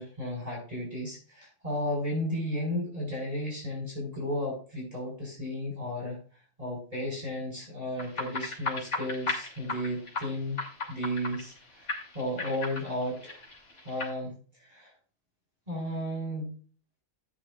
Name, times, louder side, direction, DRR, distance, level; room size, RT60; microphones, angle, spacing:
voice 1, 0.0-6.2 6.6-10.6 10.9-11.9 12.1-13.4 13.8-14.9 15.7-16.5, left 1 dB, 30° right, -2 dB, 5.5 m, -34 dB
sound 1, 8.0-11.6 11.9-14.1, left 2 dB, 70° left, 3.3 m, -36 dB
13.0 x 9.8 x 2.5 m, 0.39 s
omnidirectional pair, 1.3 m